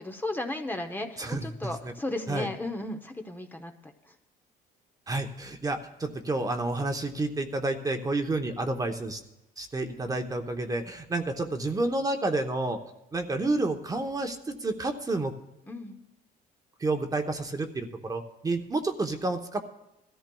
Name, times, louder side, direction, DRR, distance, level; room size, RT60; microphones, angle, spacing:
voice 1, 0.0-3.9 15.7-16.0, left 2 dB, 10° left, 4 dB, 0.8 m, -35 dB
voice 2, 1.2-1.9 2.3-2.5 5.1-9.2 9.6-12.8 13.1-15.3 16.8-19.7, right 2 dB, 20° right, 5 dB, 0.9 m, -30 dB
20.5 x 13.5 x 2.3 m, 0.92 s
cardioid pair, 110°, 17 cm